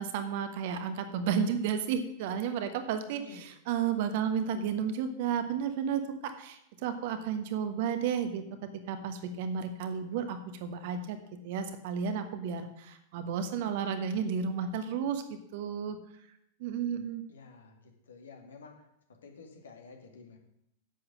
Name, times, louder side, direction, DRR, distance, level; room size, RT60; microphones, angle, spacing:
voice 1, 0.0-11.2 11.4-16.0 16.6-17.2, right 7 dB, 50° right, 8 dB, 1.3 m, -32 dB
voice 2, 3.1-3.4 17.3-17.7 18.1-18.8 19.2-20.4, left 4 dB, 65° left, 3 dB, 2.2 m, -50 dB
10.5 x 7.9 x 6.2 m, 0.77 s
figure-of-eight pair, 90°, 0 cm